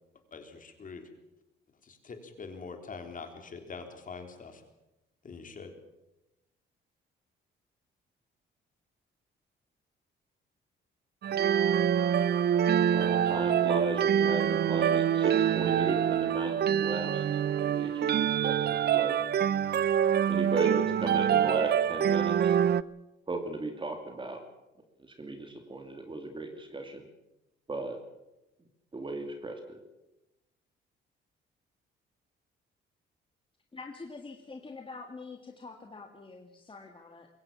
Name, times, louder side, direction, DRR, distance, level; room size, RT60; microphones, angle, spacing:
voice 1, 0.3-1.1 1.8-4.6 5.2-5.7, left 4 dB, 40° left, 5 dB, 3.7 m, -44 dB
sound 1, 11.2-22.8, right 9 dB, 55° right, 0.6 m, -26 dB
voice 2, 12.9-17.2 17.6-19.2 20.3-22.6 23.3-24.4 25.2-27.0 27.7-28.0 28.9-29.8, right 2 dB, 25° right, 5 dB, 2.7 m, -36 dB
voice 3, 33.7-37.3, left 4 dB, 25° left, 3 dB, 2.0 m, -45 dB
22.0 x 17.0 x 7.2 m, 0.96 s
cardioid pair, 90°, 20 cm